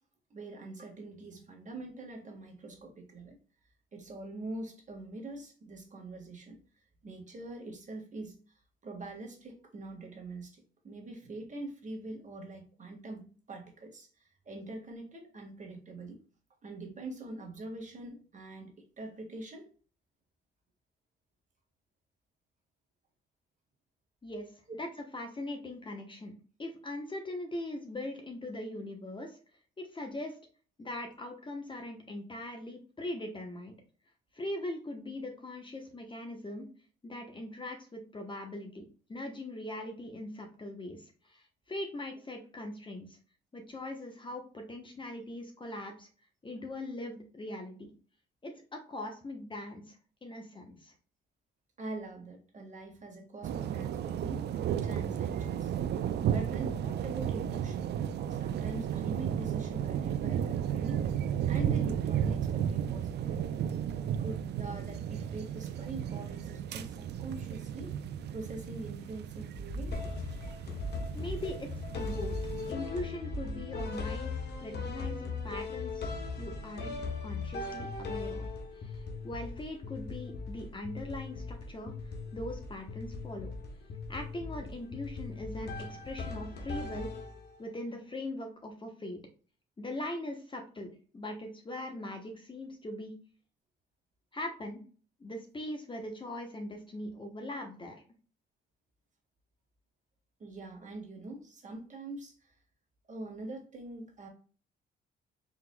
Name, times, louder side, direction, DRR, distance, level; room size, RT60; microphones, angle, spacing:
voice 1, 0.3-3.3 3.9-6.6 7.0-8.6 8.8-16.2 16.6-19.7 51.8-54.5 54.8-55.7 56.2-57.9 58.3-61.1 61.5-63.6 64.2-68.0 68.3-70.0 100.4-102.5 103.1-104.3, right 2 dB, 40° right, 1 dB, 1.6 m, -44 dB
voice 2, 25.1-26.3 26.6-29.4 29.8-30.4 30.8-33.7 34.3-36.7 37.0-43.2 43.5-46.1 46.4-47.9 48.4-50.9 71.1-71.7 71.9-72.3 72.7-78.5 78.7-83.5 84.1-87.1 87.6-89.2 89.8-90.9 91.1-93.1 94.3-94.8 95.2-98.0, left 1 dB, 25° left, 3 dB, 1.0 m, -41 dB
sound 1, 53.4-72.7, right 9 dB, 60° right, 0.4 m, -34 dB
sound 2, 69.5-70.5 70.8-71.8 72.0-73.0 73.3-74.3, right 2 dB, 85° left, 1.1 m, -40 dB
sound 3, 69.9-87.7, left 4 dB, 55° left, 1.0 m, -39 dB
4.3 x 3.7 x 2.2 m, 0.40 s
cardioid pair, 90°, 20 cm